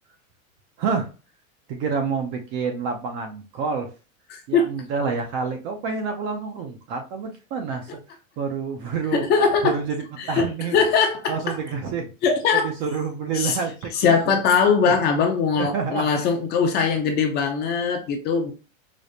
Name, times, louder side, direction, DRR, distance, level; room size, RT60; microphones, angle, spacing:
voice 1, 0.8-1.1 1.7-3.9 4.5-7.9 8.4-9.2 9.6-10.0 10.3-10.8 11.3-12.1 12.5-14.4 15.6-16.2, right 5 dB, 30° right, 0.4 m, -28 dB
voice 2, 4.3-4.7 9.1-9.8 10.2-10.5 10.7-11.6 12.2-12.7 13.3-13.6 13.9-18.5, left 5 dB, 25° left, 0.5 m, -21 dB
5.0 x 2.0 x 2.7 m
supercardioid pair, 140°, 42 cm